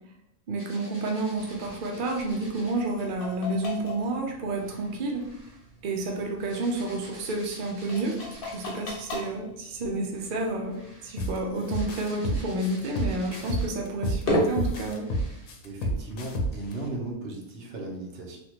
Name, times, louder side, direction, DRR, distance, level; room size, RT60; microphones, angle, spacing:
voice 1, 0.5-5.2 5.8-8.2 8.5-15.1, right 2 dB, 90° right, 1 dB, 0.4 m, -30 dB
sound 1, 0.6-2.8 4.5-8.8 10.0-13.9 14.5-14.6 15.0-15.6, right 1 dB, 30° right, 0.9 m, -50 dB
sound 2, 1.3-17.1, left 1 dB, 45° left, 0.8 m, -37 dB
sound 3, 11.2-11.4 11.7-14.2 14.6-16.7, equal, 75° left, 1.0 m, -29 dB
voice 2, 15.6-18.4, right 2 dB, 55° right, 0 dB, 0.8 m, -36 dB
3.4 x 2.3 x 2.9 m, 0.86 s
omnidirectional pair, 1.6 m